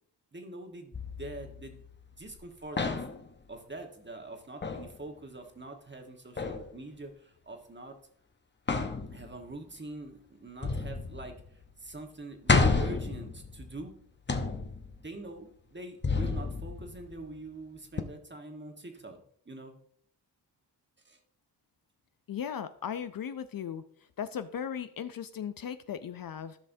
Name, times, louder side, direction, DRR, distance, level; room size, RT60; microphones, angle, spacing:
voice 1, 0.3-1.8 2.1-3.1 3.5-8.0 9.1-13.9 15.0-19.2 19.4-19.8 21.0-21.2, right 2 dB, 25° right, 4 dB, 1.4 m, -44 dB
sound 1, 0.9-2.4 2.8-3.3 4.6-5.0 6.4-6.7 8.7-9.5 10.6-11.6 12.0-12.1 12.5-13.9 14.3-15.1 16.0-17.4 18.0-18.1, left 3 dB, 25° left, 0.8 m, -31 dB
voice 2, 22.3-23.8 24.2-26.6, left 8 dB, 55° left, 12 dB, 0.5 m, -37 dB
12.5 x 5.5 x 2.7 m, 0.63 s
cardioid pair, 55°, 44 cm